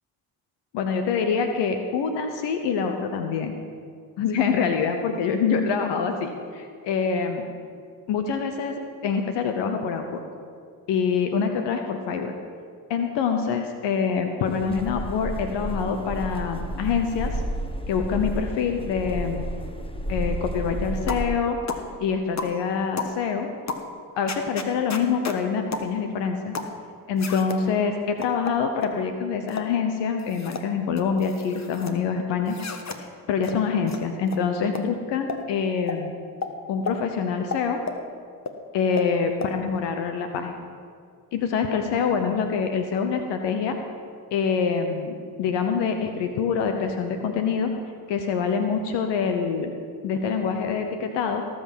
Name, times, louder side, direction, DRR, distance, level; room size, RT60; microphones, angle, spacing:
voice 1, 0.7-3.6 4.2-7.5 8.1-8.7 9.0-10.2 10.9-12.3 12.9-17.4 17.9-19.5 20.1-21.6 22.0-23.5 24.2-26.6 27.1-32.6 33.0-36.1 36.7-37.8 38.7-40.6 41.3-43.8 44.3-47.7 48.1-49.7 50.0-51.4, left 6 dB, 80° left, 6 dB, 1.0 m, -25 dB
sound 1, 14.4-21.2, right 1 dB, 15° left, 1.3 m, -31 dB
sound 2, 21.1-21.3 21.7-21.9 22.4-22.6 23.0-23.2 23.7-23.9 24.3-25.4 25.7-25.9 26.5-26.8 27.2-27.6 28.2-29.0 29.5-29.7 30.2-30.7 31.0-31.9 32.5-33.0 33.4-33.6 33.9-34.0 34.3-34.4 34.7-34.9 35.3-35.4 35.9-36.0 36.4-36.5 36.9-37.0 37.5-38.0 38.5-38.6 39.0-39.1 39.4-39.5, left 5 dB, 40° left, 1.4 m, -32 dB
18.0 x 6.2 x 7.3 m, 2.2 s
supercardioid pair, 55°, 42 cm